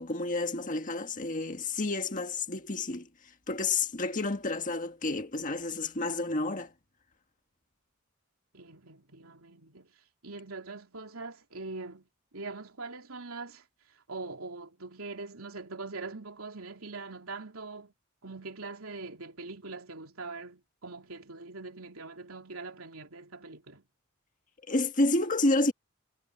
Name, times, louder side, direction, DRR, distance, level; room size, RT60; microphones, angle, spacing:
voice 1, 0.0-3.1 3.5-6.7 24.7-25.7, left 2 dB, 40° left, 1.6 m, -30 dB
voice 2, 8.5-9.9 10.2-12.1 12.3-13.6 14.1-17.9 18.2-23.8, right 3 dB, 85° right, 3.0 m, -42 dB
head